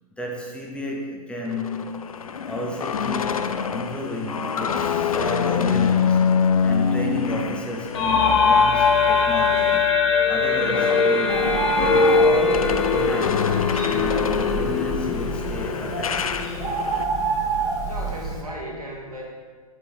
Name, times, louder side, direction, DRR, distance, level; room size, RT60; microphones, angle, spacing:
voice 1, 0.2-3.4 3.7-6.2 6.6-9.9 10.3-13.5 13.8-16.3, left 2 dB, 5° left, -2 dB, 0.6 m, -32 dB
sound 1, 1.4-9.8 10.2-17.0, left 7 dB, 70° left, 0.4 m, -26 dB
sound 2, 7.9-15.6, left 4 dB, 50° left, 0.8 m, -21 dB
Bird, 11.3-18.4, right 3 dB, 20° right, 0.9 m, -28 dB
voice 2, 17.8-19.2, equal, 80° right, -4 dB, 1.9 m, -35 dB
7.7 x 4.5 x 3.4 m, 1.5 s
figure-of-eight pair, 105°, 19 cm